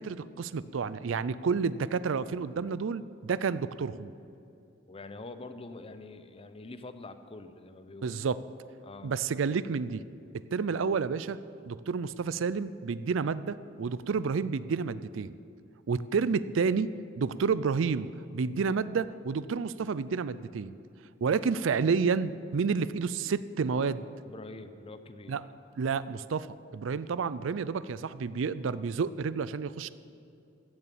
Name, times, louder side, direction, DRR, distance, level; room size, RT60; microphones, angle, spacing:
voice 1, 0.0-4.1 8.0-8.4 9.0-10.0 10.5-11.4 11.7-15.4 15.9-16.9 17.2-20.8 21.2-24.0 25.3-25.4 25.8-29.9, right 5 dB, 80° right, 16 dB, 0.4 m, -30 dB
voice 2, 4.9-8.1 8.8-9.1 24.3-25.4, left 2 dB, 30° left, 10 dB, 0.7 m, -45 dB
15.0 x 7.0 x 8.4 m, 2.6 s
head